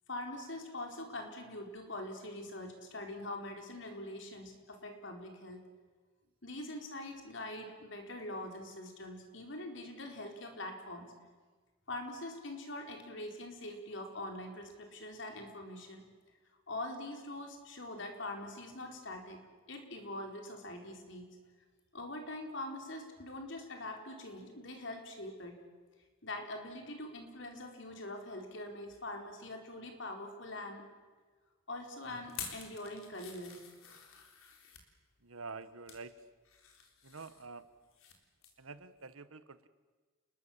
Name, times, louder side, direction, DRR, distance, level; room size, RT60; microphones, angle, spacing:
voice 1, 0.1-5.6 6.4-11.1 11.9-16.0 16.7-19.4 19.7-21.3 21.9-25.6 26.2-30.9 31.7-33.6, left 1 dB, 60° left, 3 dB, 4.3 m, -43 dB
sound 1, 32.3-34.9 35.5-36.1 36.4-38.2 38.4-38.6 39.0-39.1, left 7 dB, 85° left, 3.9 m, -49 dB
voice 2, 35.2-36.2 37.0-37.7 38.6-39.7, right 4 dB, 85° right, 13 dB, 1.3 m, -47 dB
30.0 x 21.0 x 7.3 m, 1.4 s
head